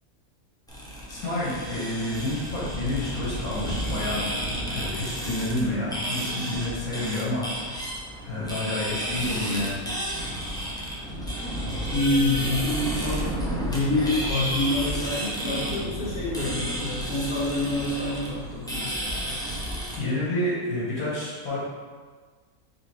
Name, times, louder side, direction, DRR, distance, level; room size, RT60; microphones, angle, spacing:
sound 1, 0.7-20.0, equal, 5° left, 0.5 m, -31 dB
voice 1, 1.1-4.2 4.7-7.5 8.2-9.8 20.0-21.6, left 1 dB, 75° left, -8 dB, 2.0 m, -29 dB
voice 2, 11.9-13.2 13.6-19.0, left 2 dB, 45° left, -9 dB, 1.8 m, -27 dB
4.9 x 3.4 x 3.1 m, 1.5 s
omnidirectional pair, 1.5 m